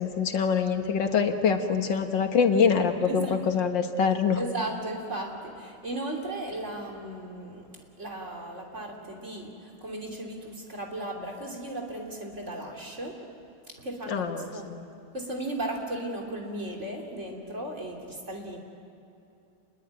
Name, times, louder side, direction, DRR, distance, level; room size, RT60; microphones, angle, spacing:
voice 1, 0.0-4.4 14.1-14.8, left 6 dB, 85° left, 5 dB, 2.2 m, -25 dB
voice 2, 2.9-3.4 4.3-13.3 13.7-14.7 15.1-18.6, right 1 dB, 40° right, 0 dB, 3.5 m, -36 dB
28.5 x 21.5 x 9.1 m, 2.7 s
omnidirectional pair, 1.9 m